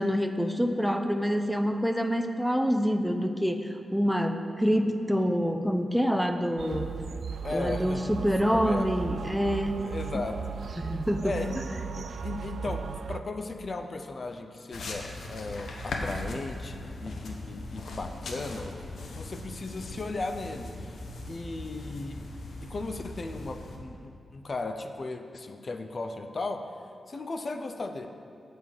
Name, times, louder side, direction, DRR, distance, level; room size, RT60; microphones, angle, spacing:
voice 1, 0.0-6.9 7.5-9.8 10.1-10.3 10.8-11.4, equal, 5° right, 7 dB, 0.5 m, -27 dB
sound 1, 6.6-13.2, right 6 dB, 75° right, 0.3 m, -36 dB
voice 2, 7.4-8.3 8.5-8.9 9.8-10.5 11.2-11.6 12.0-21.0 21.3-22.2 22.6-26.6 27.1-28.1, left 3 dB, 50° left, 6 dB, 0.6 m, -36 dB
sound 2, 14.7-23.8, left 2 dB, 75° left, 0.9 m, -39 dB
8.1 x 4.8 x 7.3 m, 2.5 s
cardioid pair, 60°, 0 cm